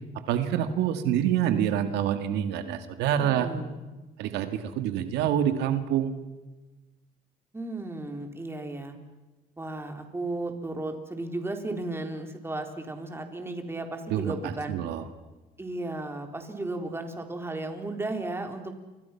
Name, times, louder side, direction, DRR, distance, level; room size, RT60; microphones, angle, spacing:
voice 1, 0.3-3.5 4.2-6.1 14.1-15.0, right 10 dB, 90° right, 9 dB, 2.1 m, -26 dB
voice 2, 3.2-3.8 7.5-9.0 9.6-14.8 15.6-18.7, right 2 dB, 15° right, 5 dB, 3.8 m, -34 dB
30.0 x 25.0 x 5.9 m, 1.2 s
cardioid pair, 110°, 17 cm